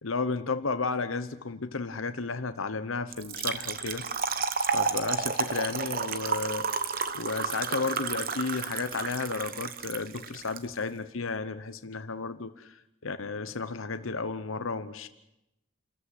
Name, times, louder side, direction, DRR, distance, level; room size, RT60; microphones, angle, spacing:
voice 1, 0.0-4.0 4.7-6.7 7.1-15.1, left 4 dB, 80° left, 11 dB, 1.0 m, -33 dB
Trickle dribble / Fill (with liquid), 3.1-10.6, right 5 dB, 45° right, 1.0 m, -31 dB
29.0 x 14.5 x 8.1 m, 0.88 s
head